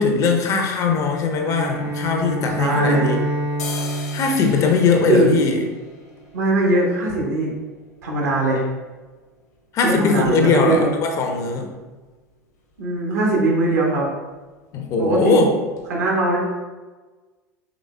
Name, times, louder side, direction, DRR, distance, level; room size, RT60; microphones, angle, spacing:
voice 1, 0.0-3.2 4.1-5.6 9.7-11.7 14.7-15.5, left 4 dB, 35° left, 3 dB, 0.6 m, -20 dB
Bowed string instrument, 1.4-5.6, right 1 dB, 25° right, 0.7 m, -28 dB
sound 1, 2.0-3.1 3.4-11.1 11.4-11.5 11.8-12.4 12.7-12.9 13.2-13.4 13.7-14.4 14.7-14.9 15.4-15.5 15.8-15.9, left 3 dB, 65° left, 1.0 m, -41 dB
voice 2, 2.6-3.1 5.1-5.3 6.3-7.5 8.0-8.7 9.8-10.9 12.8-14.1 15.0-15.5 15.9-16.4, right 2 dB, 65° right, -2 dB, 1.1 m, -20 dB
5.0 x 3.4 x 2.2 m, 1.3 s
figure-of-eight pair, 80°, 9 cm